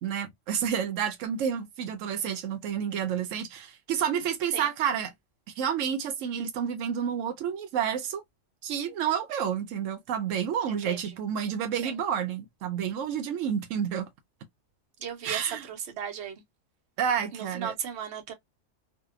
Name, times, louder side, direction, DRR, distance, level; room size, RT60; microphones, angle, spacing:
voice 1, 0.0-5.1 5.6-8.2 8.6-14.1 15.2-15.7 17.0-17.7, right 8 dB, 90° right, 0.9 m, -30 dB
voice 2, 10.7-11.0 11.8-11.9 15.0-16.4 17.3-18.3, right 8 dB, 65° right, 1.0 m, -36 dB
2.7 x 2.2 x 2.3 m
omnidirectional pair, 1.3 m